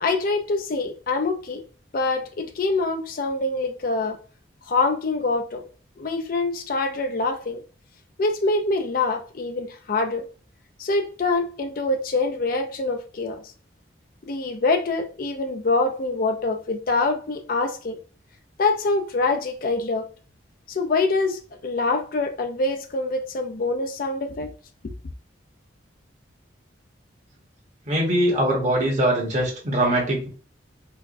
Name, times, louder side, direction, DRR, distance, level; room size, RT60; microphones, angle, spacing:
voice 1, 0.0-1.6 1.9-4.2 4.7-5.6 6.0-7.6 8.2-10.2 10.8-13.4 14.3-18.0 18.6-20.1 20.7-24.5, left 3 dB, 45° left, 0.4 m, -25 dB
voice 2, 27.9-30.3, right 1 dB, 40° right, 1.2 m, -22 dB
4.5 x 2.2 x 2.5 m
head